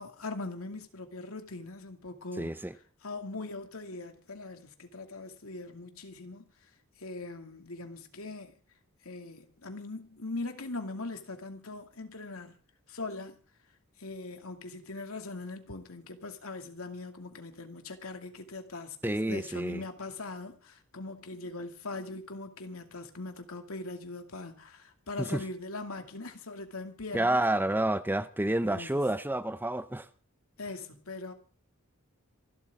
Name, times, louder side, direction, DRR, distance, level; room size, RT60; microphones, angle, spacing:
voice 1, 0.0-2.6 3.0-6.4 7.0-8.5 9.0-12.5 12.9-13.4 14.0-27.4 28.4-29.0 30.6-31.3, left 3 dB, 85° left, 2.5 m, -41 dB
voice 2, 2.4-2.7 19.0-19.8 25.2-25.4 27.1-30.1, right 1 dB, 10° right, 0.7 m, -29 dB
27.0 x 12.0 x 3.7 m
head